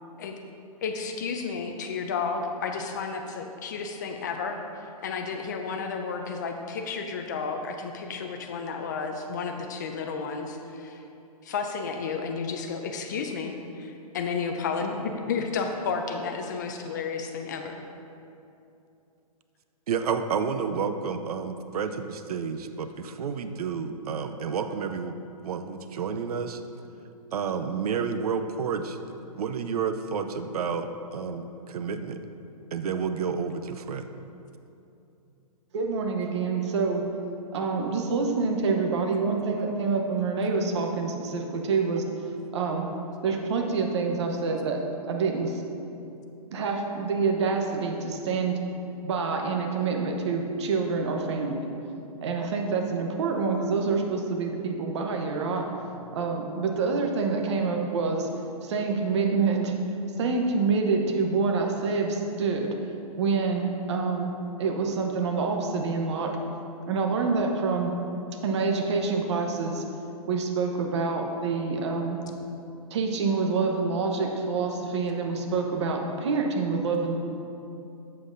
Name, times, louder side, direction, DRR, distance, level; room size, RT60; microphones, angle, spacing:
voice 1, 0.8-11.0 11.4-17.8, left 5 dB, 30° left, 5 dB, 0.4 m, -32 dB
voice 2, 19.9-25.1 25.4-26.6 27.3-29.0 29.3-30.9 31.1-32.2 32.7-34.1, right 6 dB, 80° right, 9 dB, 0.5 m, -30 dB
voice 3, 35.7-37.0 37.5-42.0 42.5-42.9 43.2-44.8 45.1-45.6 46.5-48.6 49.0-51.7 52.2-55.6 56.1-58.3 58.6-59.7 60.2-62.7 63.2-64.3 64.6-66.4 66.9-67.9 68.4-69.8 70.3-72.2 72.9-77.2, right 4 dB, 50° right, 2 dB, 0.9 m, -27 dB
8.2 x 7.4 x 2.6 m, 2.7 s
hypercardioid pair, 165°, 19 cm